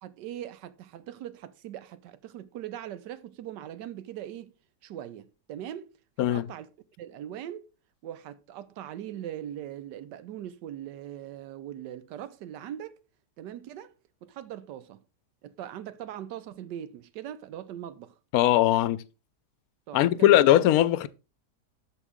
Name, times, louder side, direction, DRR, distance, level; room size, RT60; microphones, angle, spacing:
voice 1, 0.0-4.5 4.8-5.9 6.2-6.7 7.0-7.7 8.0-12.9 13.4-13.9 14.2-15.0 15.4-18.1 19.9-20.4, right 11 dB, 90° right, 1.3 m, -40 dB
voice 2, 18.3-19.0 19.9-21.1, left 13 dB, 70° left, 0.9 m, -20 dB
12.5 x 4.2 x 3.6 m
omnidirectional pair, 1.8 m